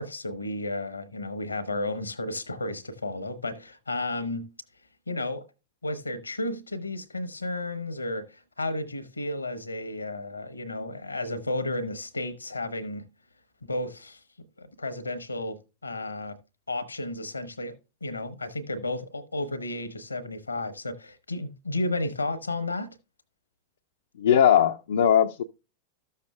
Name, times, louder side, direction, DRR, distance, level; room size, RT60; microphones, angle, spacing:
voice 1, 0.0-4.5 5.1-5.4 5.8-13.0 13.6-14.2 14.6-16.4 16.7-17.8 18.0-22.9, left 2 dB, 80° left, 0.9 m, -33 dB
voice 2, 24.2-25.4, left 9 dB, 60° left, 0.5 m, -20 dB
13.5 x 6.6 x 2.3 m
figure-of-eight pair, 90°, 0 cm